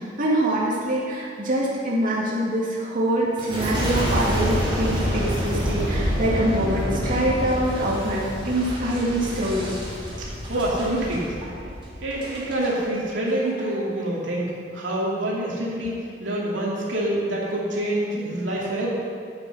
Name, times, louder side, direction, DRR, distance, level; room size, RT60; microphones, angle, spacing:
voice 1, 0.0-9.7, right 1 dB, 45° right, -6 dB, 2.3 m, -24 dB
Boom, 3.4-12.7 13.3-13.7, equal, 30° right, 3.2 m, -27 dB
voice 2, 10.5-11.4 12.0-18.9, right 1 dB, 90° right, -5 dB, 2.6 m, -26 dB
11.5 x 8.9 x 5.5 m, 2.3 s
head